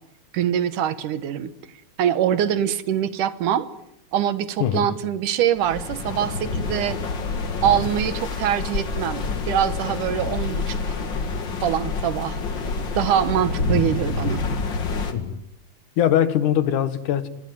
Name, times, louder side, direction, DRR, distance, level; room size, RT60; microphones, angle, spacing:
voice 1, 0.3-1.5 2.0-3.7 4.1-7.0 7.6-10.8 11.6-12.4 13.0-14.4, right 10 dB, 80° right, 14 dB, 2.8 m, -23 dB
sound 1, 5.6-15.1, left 4 dB, 40° left, 2.4 m, -27 dB
voice 2, 16.0-17.3, left 10 dB, 75° left, 13 dB, 2.9 m, -21 dB
26.0 x 22.0 x 9.5 m, 0.78 s
omnidirectional pair, 3.6 m